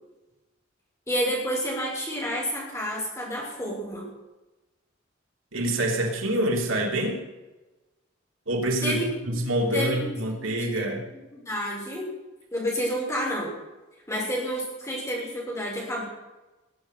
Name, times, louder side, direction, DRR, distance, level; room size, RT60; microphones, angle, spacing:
voice 1, 1.1-4.1 8.8-9.3 9.7-12.1 12.5-13.5 14.1-16.0, equal, 15° left, -3 dB, 6.3 m, -30 dB
voice 2, 5.5-7.3 8.5-9.0 9.2-11.0, right 1 dB, 90° right, 0 dB, 3.6 m, -26 dB
20.0 x 8.7 x 8.2 m, 1.1 s
head